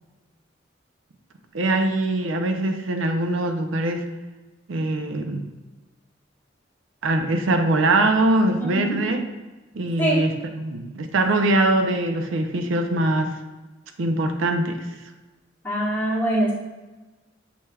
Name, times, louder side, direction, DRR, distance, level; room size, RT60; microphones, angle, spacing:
voice 1, 1.5-4.1 4.7-5.4 7.0-9.2 9.7-13.4 14.0-14.8, right 2 dB, 85° right, 6 dB, 0.5 m, -22 dB
voice 2, 8.6-9.0 10.0-10.3 15.6-16.5, right 1 dB, 10° left, -7 dB, 1.2 m, -24 dB
6.9 x 3.2 x 2.3 m, 1.2 s
head